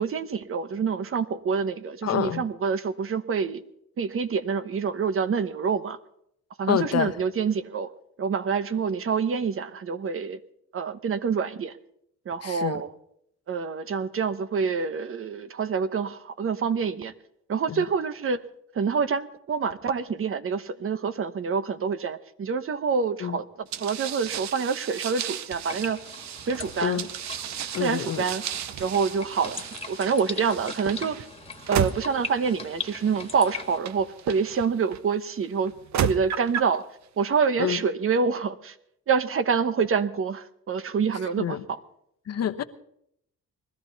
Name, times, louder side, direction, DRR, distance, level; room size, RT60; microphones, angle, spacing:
voice 1, 0.0-3.6 4.0-6.0 6.6-7.9 8.2-10.4 10.7-11.7 12.3-12.9 13.5-17.1 17.5-18.4 18.7-26.0 26.5-27.0 27.8-28.4 28.8-31.3 31.7-36.9 37.2-38.7 39.1-41.8, right 5 dB, 45° right, 1.1 m, -27 dB
voice 2, 2.0-2.4 6.7-7.1 12.4-12.8 17.7-17.8 23.2-23.4 26.8-27.1 27.7-28.2 37.6-37.8 41.4-41.6 42.3-42.6, left 10 dB, 55° left, 1.1 m, -27 dB
sound 1, 23.7-35.0 35.7-36.8, right 10 dB, 65° right, 0.8 m, -34 dB
sound 2, 25.6-33.8, left 4 dB, 20° left, 1.8 m, -40 dB
20.5 x 13.5 x 4.1 m
cardioid pair, 90°, 30 cm